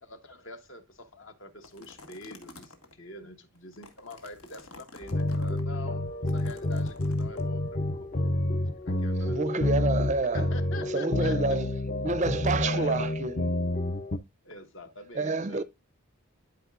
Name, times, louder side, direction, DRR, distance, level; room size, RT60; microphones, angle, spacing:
voice 1, 0.0-9.7 10.3-11.6 12.6-13.1 14.4-15.6, left 1 dB, 60° left, 1.2 m, -45 dB
sound 1, 1.6-2.9 3.6-5.6 6.3-7.4, left 3 dB, 90° left, 1.6 m, -50 dB
sound 2, 5.0-14.2, left 1 dB, 35° left, 0.5 m, -29 dB
voice 2, 9.1-10.5 10.8-11.7 12.0-13.5 15.1-15.6, right 3 dB, 30° right, 0.4 m, -29 dB
11.5 x 4.9 x 2.4 m
head